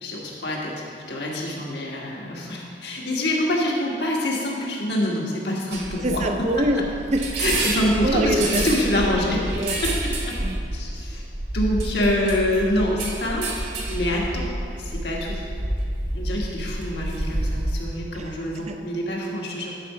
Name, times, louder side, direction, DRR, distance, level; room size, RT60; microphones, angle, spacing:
voice 1, 0.0-6.3 7.4-9.5 9.8-9.9 10.3-10.4 10.7-11.2 11.5-14.5 14.8-15.4 16.1-19.7, left 1 dB, 70° left, -3 dB, 1.6 m, -26 dB
sound 1, 5.7-17.8, right 1 dB, 75° right, 1.7 m, -29 dB
voice 2, 6.0-7.4 8.0-8.6 9.6-9.8 10.4-10.6 18.1-18.8, right 1 dB, 40° right, 5 dB, 0.5 m, -25 dB
11.0 x 4.8 x 5.6 m, 2.4 s
head